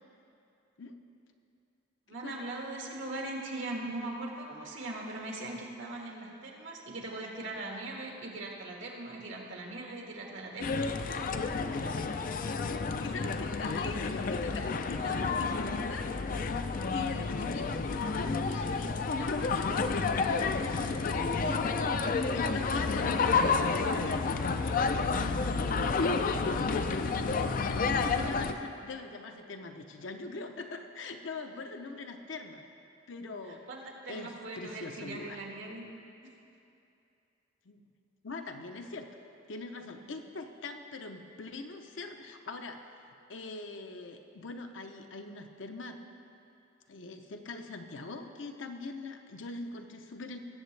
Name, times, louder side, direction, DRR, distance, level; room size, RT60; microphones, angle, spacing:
voice 1, 2.1-10.7 33.5-35.8 36.2-36.3 40.0-40.1, right 2 dB, 80° right, -1 dB, 1.6 m, -40 dB
sound 1, 10.6-28.5, left 4 dB, 45° left, 0.4 m, -30 dB
voice 2, 12.4-16.4 16.9-22.0 22.3-26.0 26.5-32.6 33.1-33.6 34.1-35.4 37.6-37.8 38.2-39.1 39.5-42.8 43.3-46.0 46.9-50.4, left 3 dB, 80° left, 5 dB, 0.7 m, -42 dB
19.0 x 7.4 x 3.3 m, 2.7 s
head